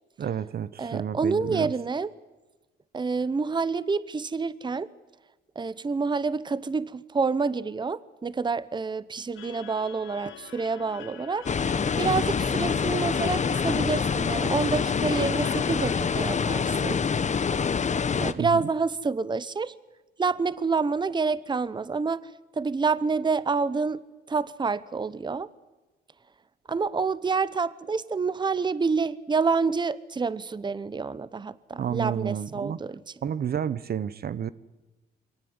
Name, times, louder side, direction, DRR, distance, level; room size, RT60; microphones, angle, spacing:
voice 1, 0.2-1.7 18.4-18.6 31.8-32.8 33.2-34.5, right 8 dB, 50° right, 17 dB, 0.8 m, -30 dB
voice 2, 0.8-2.1 2.9-4.9 5.6-11.5 12.0-17.0 18.2-19.7 20.2-22.3 22.6-24.0 24.3-25.5 26.7-33.1, right 4 dB, 25° right, 18 dB, 0.9 m, -28 dB
sound 1, 9.3-16.7, left 9 dB, 75° left, 1.8 m, -46 dB
sound 2, 11.5-18.3, left 6 dB, 35° left, 1.1 m, -26 dB
23.5 x 18.5 x 9.7 m, 1.1 s
cardioid pair, 90°, 20 cm